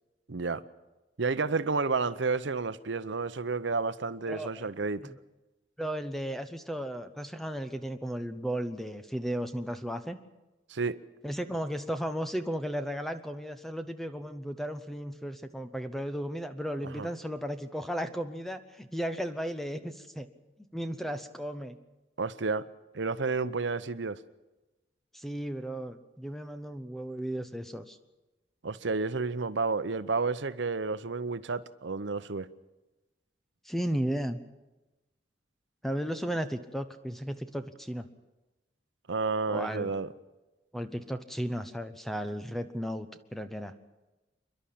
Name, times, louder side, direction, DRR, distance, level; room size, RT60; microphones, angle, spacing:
voice 1, 0.3-0.6 1.2-5.0 10.7-11.0 17.0-17.1 22.2-22.7 22.9-24.2 28.6-32.5 39.1-40.1, right 4 dB, 75° right, 0.8 m, -31 dB
voice 2, 4.3-4.6 5.0-5.1 5.8-10.2 11.2-20.3 20.6-21.8 25.1-28.0 33.6-34.4 35.8-38.0 39.5-39.9 40.7-43.7, equal, ahead, 1.0 m, -35 dB
28.5 x 11.5 x 8.6 m
head